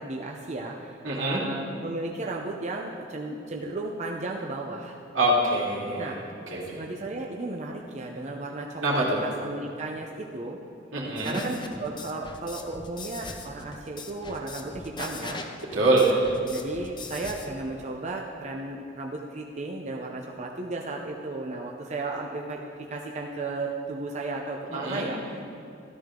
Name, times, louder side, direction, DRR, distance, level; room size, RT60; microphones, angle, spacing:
voice 1, 0.0-5.0 6.0-6.2 6.5-10.6 11.2-15.4 15.9-16.1 16.5-25.6, right 2 dB, 35° right, 0 dB, 0.7 m, -34 dB
voice 2, 1.0-1.4 5.1-6.2 6.5-6.8 8.8-9.2 10.9-11.4 15.7-16.1 24.7-25.0, right 2 dB, 85° right, -5 dB, 2.9 m, -24 dB
sound 1, 11.2-17.5, left 3 dB, 25° left, 0.7 m, -40 dB
13.5 x 12.5 x 3.8 m, 2.7 s
head